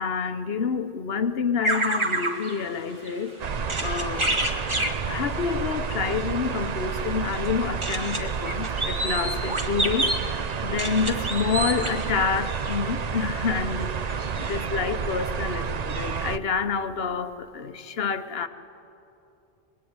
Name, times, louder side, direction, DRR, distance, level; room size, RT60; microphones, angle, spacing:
voice 1, 0.0-3.4 3.8-4.4 5.1-18.5, left 6 dB, 65° left, 10 dB, 1.2 m, -28 dB
sound 1, 1.6-13.3 13.8-13.9 14.1-14.6, right 1 dB, 25° right, 1.7 m, -30 dB
sound 2, 3.4-16.4, right 6 dB, 45° right, 0.7 m, -30 dB
24.0 x 21.0 x 9.6 m, 2.8 s
omnidirectional pair, 1.1 m